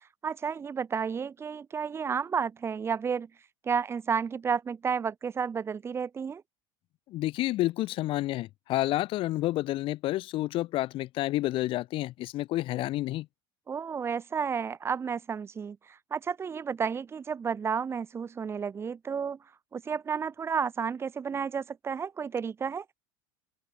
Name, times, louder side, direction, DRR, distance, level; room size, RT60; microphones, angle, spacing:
voice 1, 0.2-3.3 3.6-6.4 13.7-19.4 19.7-22.8, right 6 dB, 20° right, 0.7 m, -31 dB
voice 2, 7.1-13.3, left 16 dB, 50° left, 0.8 m, -29 dB
open air
supercardioid pair, 120°, 11 cm